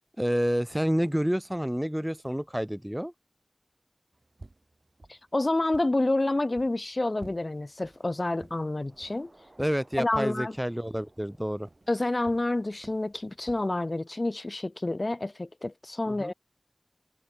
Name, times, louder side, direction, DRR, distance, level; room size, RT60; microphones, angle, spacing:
voice 1, 0.2-3.1 9.6-11.7 16.1-16.3, equal, 10° right, 0.4 m, -29 dB
sound 1, 4.1-13.7, right 2 dB, 75° right, 4.8 m, -55 dB
voice 2, 5.1-9.3 10.0-10.5 11.9-16.3, left 2 dB, 60° left, 1.5 m, -28 dB
sound 2, 8.8-14.1, right 2 dB, 55° right, 7.1 m, -61 dB
wide cardioid pair, 45°, 0 cm